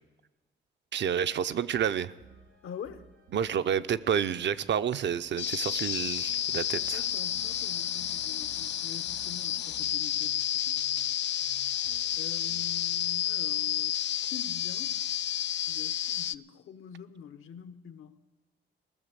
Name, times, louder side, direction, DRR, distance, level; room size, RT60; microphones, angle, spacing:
voice 1, 0.9-2.1 3.3-7.0, right 8 dB, 60° right, 0.6 m, -29 dB
sound 1, 1.7-12.9, right 4 dB, 80° right, 3.0 m, -57 dB
voice 2, 2.6-3.0 6.7-11.3 11.6-11.7 12.2-14.9 15.7-18.2, left 8 dB, 80° left, 1.0 m, -46 dB
sound 2, 5.4-16.4, left 11 dB, 60° left, 0.4 m, -31 dB
19.0 x 7.0 x 8.2 m
cardioid pair, 95°, 21 cm